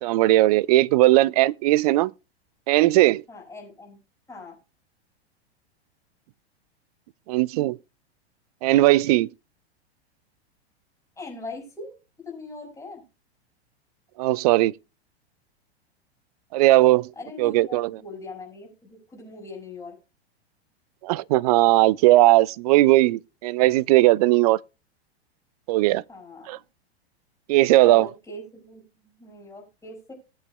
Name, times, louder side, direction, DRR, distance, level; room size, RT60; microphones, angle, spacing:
voice 1, 0.0-2.1 2.7-3.2 7.3-7.8 8.6-9.3 14.2-14.7 16.5-17.1 17.4-18.0 21.0-24.6 25.7-26.0 26.5-26.6 27.5-28.1, right 17 dB, 35° right, 0.4 m, -18 dB
voice 2, 3.3-4.6 11.2-12.0 12.3-13.0 17.2-20.0 26.1-26.6 27.8-30.1, left 3 dB, 10° left, 5.4 m, -41 dB
19.5 x 8.0 x 2.2 m
figure-of-eight pair, 95°, 33 cm